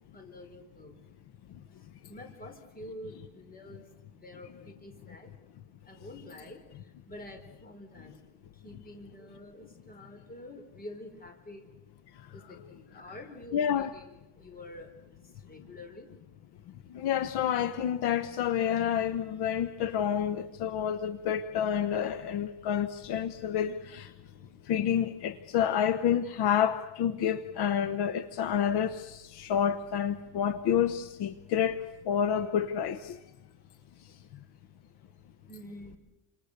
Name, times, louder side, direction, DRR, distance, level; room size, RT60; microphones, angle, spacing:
voice 1, 0.1-0.9 1.7-5.3 5.8-11.7 12.3-16.1 16.9-17.0 24.2-24.6 34.9-35.0 35.4-36.0, left 1 dB, 20° left, 6 dB, 4.6 m, -48 dB
voice 2, 13.5-13.9 16.9-24.1 24.6-33.2, left 9 dB, 55° left, 11 dB, 1.2 m, -29 dB
29.5 x 26.0 x 6.8 m, 0.97 s
cardioid pair, 145°, 45 cm